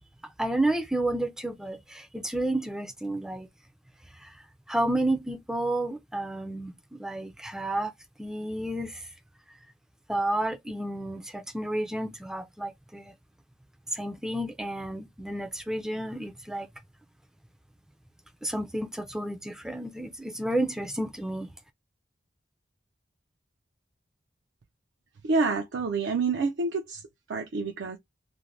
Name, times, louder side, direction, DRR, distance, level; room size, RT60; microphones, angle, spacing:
voice 1, 0.2-3.5 4.2-4.3 4.7-7.9 8.2-9.1 10.1-13.1 13.9-16.7 18.4-21.5, right 1 dB, 5° right, 0.4 m, -31 dB
voice 2, 25.2-27.0 27.3-28.0, right 4 dB, 75° right, 0.4 m, -28 dB
2.5 x 2.1 x 3.1 m
head